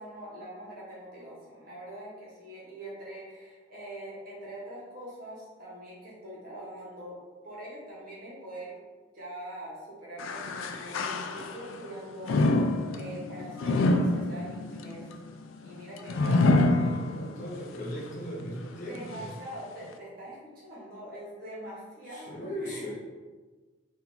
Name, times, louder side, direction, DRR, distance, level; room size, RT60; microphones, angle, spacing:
voice 1, 0.0-7.2 7.4-8.8 9.1-12.4 12.9-15.1 15.6-16.9 18.9-22.9, right 1 dB, 45° right, -6 dB, 1.3 m, -43 dB
sound 1, 10.2-11.8 12.2-17.5 18.0-18.1 18.9-19.0, left 2 dB, 75° left, 0.4 m, -26 dB
voice 2, 16.2-19.3 22.1-22.9, equal, 40° left, -5 dB, 1.2 m, -38 dB
4.3 x 2.6 x 3.9 m, 1.4 s
head